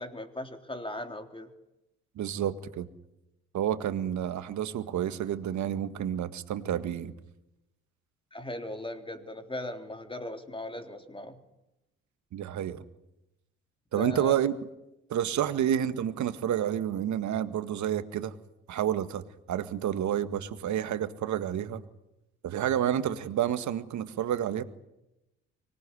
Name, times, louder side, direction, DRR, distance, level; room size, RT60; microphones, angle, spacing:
voice 1, 0.0-1.5 8.3-11.4 13.9-14.4, left 1 dB, 15° left, 6 dB, 3.5 m, -38 dB
voice 2, 2.2-2.9 3.5-7.1 12.3-12.8 13.9-14.5 15.1-18.4 18.7-21.8 22.4-24.6, right 10 dB, 55° right, 11 dB, 1.8 m, -29 dB
24.5 x 19.0 x 9.9 m, 0.92 s
hypercardioid pair, 55°, 34 cm